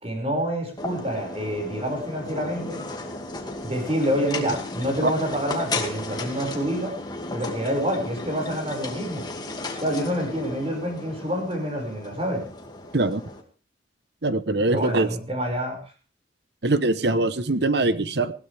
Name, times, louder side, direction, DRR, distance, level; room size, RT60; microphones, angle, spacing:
voice 1, 0.0-2.8 3.6-7.0 7.3-9.3 9.8-12.4 14.7-15.8, equal, 30° right, 3 dB, 5.7 m, -27 dB
sound 1, 0.8-13.4, left 2 dB, 25° left, 2.3 m, -35 dB
voice 2, 14.2-15.1 16.6-18.3, right 2 dB, 65° right, 13 dB, 1.0 m, -22 dB
20.0 x 16.0 x 3.5 m, 0.35 s
head